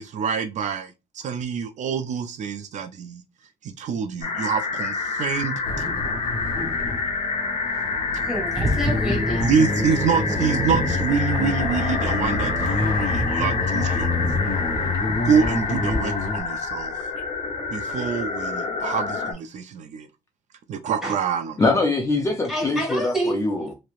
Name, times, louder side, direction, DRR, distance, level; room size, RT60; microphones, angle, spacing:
voice 1, 0.0-3.2 3.6-5.9 9.4-14.3 15.2-16.9 17.7-20.1 20.7-21.6, right 6 dB, 60° right, 0.4 m, -26 dB
sound 1, 4.2-19.3, left 4 dB, 60° left, 0.8 m, -28 dB
sound 2, 5.6-16.4, left 3 dB, 75° left, 1.1 m, -28 dB
voice 2, 8.2-9.4 17.9-18.0 21.0-21.1 22.5-23.4, equal, 5° right, 1.5 m, -28 dB
sound 3, 8.5-16.0, right 1 dB, 25° right, 1.0 m, -30 dB
voice 3, 21.6-23.7, left 2 dB, 20° left, 0.5 m, -23 dB
3.1 x 2.8 x 2.4 m
cardioid pair, 150°, 14 cm